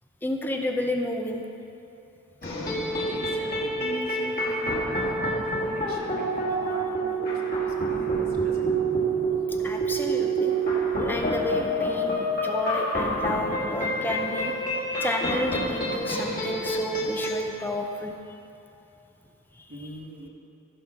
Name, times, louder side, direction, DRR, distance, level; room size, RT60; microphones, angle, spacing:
voice 1, 0.2-1.4 9.6-10.5 11.0-14.5 14.9-18.1 19.6-19.7, left 1 dB, 10° left, 2 dB, 0.6 m, -31 dB
sound 1, 2.4-17.4, right 2 dB, 40° left, 2.1 m, -27 dB
voice 2, 2.5-8.8 16.4-16.6 19.7-20.3, equal, 45° right, -1 dB, 1.5 m, -41 dB
14.5 x 5.5 x 6.1 m, 2.9 s
head